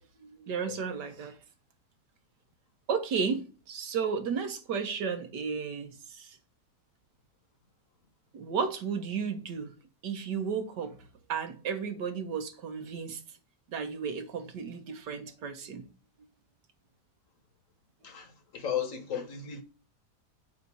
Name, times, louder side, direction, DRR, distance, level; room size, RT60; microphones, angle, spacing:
voice 1, 0.2-1.4 2.9-6.4 8.3-9.7 10.0-11.0 11.3-13.2 13.7-15.8, right 6 dB, 85° right, 1.7 m, -33 dB
voice 2, 18.0-19.6, left 8 dB, 55° left, 1.4 m, -35 dB
8.1 x 2.7 x 6.1 m
omnidirectional pair, 1.8 m